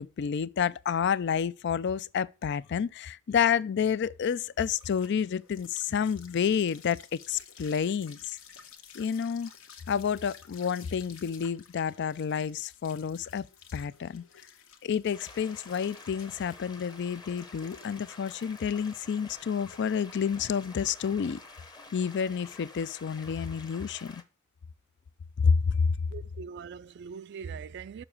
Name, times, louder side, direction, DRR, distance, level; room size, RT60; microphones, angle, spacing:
voice 1, 0.0-8.4 8.9-9.5 9.9-13.5 13.7-14.2 14.8-21.4 21.9-24.2 25.4-25.9, left 7 dB, 55° left, 0.4 m, -29 dB
sound 1, 3.8-22.8, left 7 dB, 75° left, 1.2 m, -54 dB
sound 2, 15.1-24.2, left 3 dB, 20° left, 0.9 m, -50 dB
voice 2, 26.1-28.0, right 6 dB, 55° right, 0.3 m, -41 dB
6.8 x 6.1 x 7.2 m
head